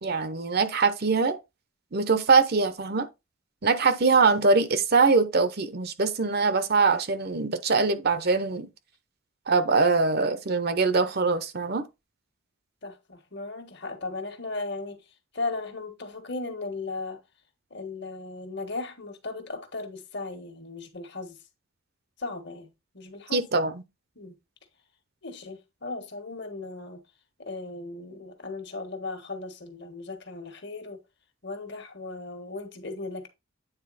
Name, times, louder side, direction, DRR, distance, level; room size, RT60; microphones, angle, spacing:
voice 1, 0.0-1.4 1.9-3.1 3.6-8.7 9.5-11.8 23.3-23.8, right 4 dB, 50° right, 0.7 m, -23 dB
voice 2, 12.8-15.0 15.3-17.2 17.7-21.4 22.2-22.7 22.9-23.4 24.2-24.3 25.2-27.0 27.4-31.0 31.4-33.3, left 3 dB, 55° left, 1.5 m, -36 dB
9.0 x 4.0 x 4.1 m
head